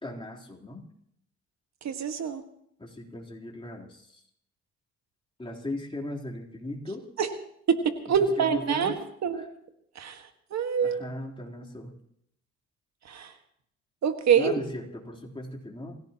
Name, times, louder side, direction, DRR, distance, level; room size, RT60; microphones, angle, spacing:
voice 1, 0.0-0.8 2.8-4.2 5.4-7.0 8.4-9.0 9.3-9.5 10.8-11.9 14.3-15.9, left 1 dB, 15° left, -1 dB, 3.6 m, -37 dB
voice 2, 1.8-2.4 7.2-7.3 7.7-7.8 8.1-8.9 9.2-9.4 10.0-10.2 10.5-11.0 13.1-13.3 14.0-14.6, right 7 dB, 65° right, 7 dB, 1.7 m, -25 dB
26.5 x 16.5 x 3.0 m, 0.71 s
cardioid pair, 90°, 30 cm